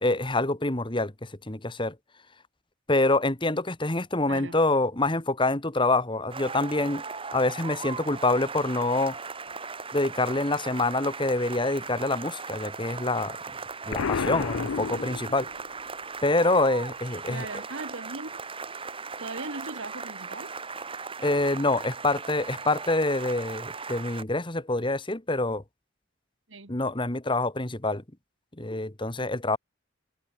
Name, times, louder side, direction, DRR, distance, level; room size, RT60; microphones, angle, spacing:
voice 1, 0.0-1.9 2.9-7.0 7.3-9.2 9.9-13.4 13.9-15.5 16.2-17.5 21.2-25.6 26.7-28.0 28.6-29.6, left 2 dB, 25° left, 1.6 m, -26 dB
voice 2, 4.3-4.6 17.3-18.4 19.2-20.5 26.5-26.7, right 2 dB, 70° right, 2.4 m, -38 dB
sound 1, 6.3-24.2, right 4 dB, 25° right, 2.4 m, -38 dB
Explosion, 13.9-15.7, left 6 dB, 85° left, 0.5 m, -31 dB
head